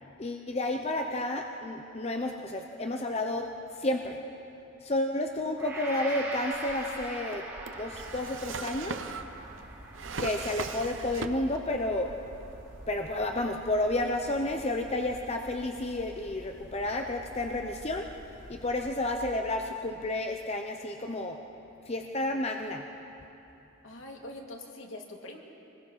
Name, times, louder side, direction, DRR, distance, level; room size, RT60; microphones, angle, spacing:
voice 1, 0.0-3.5 3.7-4.2 4.8-7.5 7.7-9.1 10.2-12.1 12.9-18.1 18.5-21.4 21.9-22.9, left 1 dB, 30° left, 3 dB, 0.8 m, -31 dB
Gong, 5.6-13.9 14.3-14.5, right 2 dB, 15° right, 4.1 m, -43 dB
Drawer open or close, 6.5-11.7 12.0-12.8, right 4 dB, 65° right, 0.8 m, -39 dB
sound 1, 7.7-19.1, equal, 45° right, 4.0 m, -50 dB
voice 2, 23.8-25.4, left 1 dB, 70° left, 1 dB, 2.4 m, -43 dB
24.5 x 20.5 x 5.6 m, 2.9 s
head